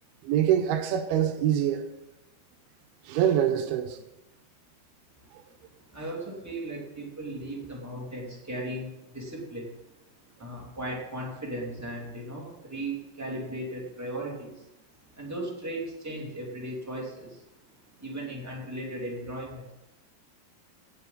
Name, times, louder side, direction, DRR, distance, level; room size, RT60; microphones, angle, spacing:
voice 1, 0.2-1.9 3.1-4.0 5.3-5.4, right 10 dB, 80° right, 2.5 m, -25 dB
voice 2, 5.9-9.7 10.4-14.7 15.2-17.4 18.0-19.7, right 1 dB, 5° right, 1.5 m, -36 dB
17.0 x 8.1 x 4.0 m
omnidirectional pair, 4.6 m